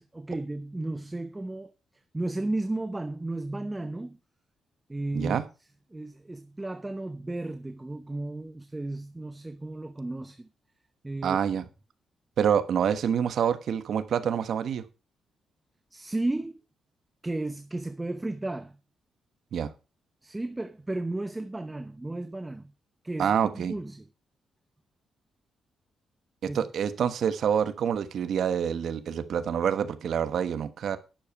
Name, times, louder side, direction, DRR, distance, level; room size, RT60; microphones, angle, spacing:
voice 1, 0.0-1.7 2.1-4.2 4.9-5.4 5.9-10.5 11.0-11.4 15.9-16.6 17.2-18.8 20.2-22.7 23.0-24.1 26.5-26.7, right 2 dB, 15° right, 0.8 m, -34 dB
voice 2, 5.1-5.4 11.2-11.6 12.4-14.8 19.5-19.7 23.2-23.7 26.4-31.0, right 8 dB, 70° right, 1.2 m, -27 dB
10.0 x 6.8 x 5.6 m
cardioid pair, 75°, 0 cm